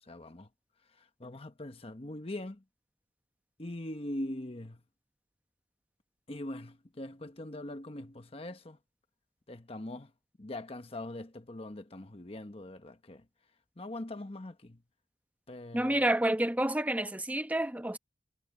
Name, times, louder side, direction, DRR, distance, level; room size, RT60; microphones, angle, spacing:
voice 1, 0.0-0.5 1.0-2.6 3.6-4.8 6.3-8.8 9.5-10.1 10.4-13.2 13.8-14.8 15.5-16.0, left 1 dB, 35° left, 1.1 m, -42 dB
voice 2, 15.7-18.0, right 1 dB, 10° right, 0.9 m, -29 dB
head